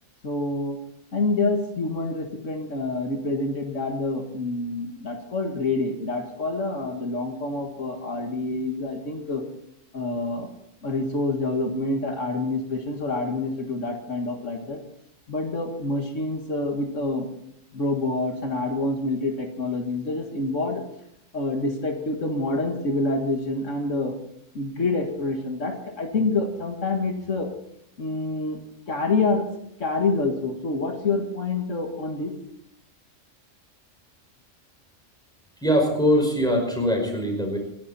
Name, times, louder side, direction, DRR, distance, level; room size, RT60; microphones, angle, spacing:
voice 1, 0.2-0.8 1.1-9.4 9.9-10.5 10.8-14.8 15.3-17.3 17.7-20.8 21.3-24.1 24.5-27.5 28.0-28.6 28.9-29.5 29.8-32.3, left 2 dB, 70° left, 3 dB, 2.1 m, -27 dB
voice 2, 35.6-37.6, equal, 5° left, 1 dB, 5.2 m, -22 dB
27.0 x 11.5 x 4.2 m, 0.76 s
omnidirectional pair, 1.3 m